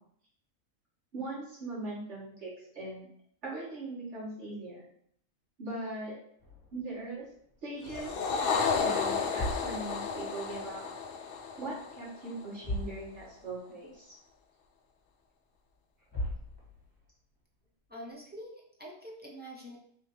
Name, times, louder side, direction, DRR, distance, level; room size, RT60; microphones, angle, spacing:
voice 1, 1.1-3.1 3.4-4.9 5.6-6.2 6.7-7.3 7.6-8.1 8.8-10.9 11.6-14.2, right 2 dB, 55° right, -7 dB, 1.8 m, -40 dB
sound 1, 6.4-8.0 8.4-8.7 9.1-11.0 11.3-12.0 12.2-12.3 12.6-13.6 13.9-14.0 14.6-14.7 15.7-15.8 16.1-17.1, left 1 dB, 15° left, 1.6 m, -40 dB
sound 2, 7.8-12.4, left 5 dB, 70° left, 0.5 m, -32 dB
voice 2, 17.9-19.8, equal, 15° right, -3 dB, 0.4 m, -45 dB
3.5 x 2.8 x 4.5 m, 0.65 s
omnidirectional pair, 1.5 m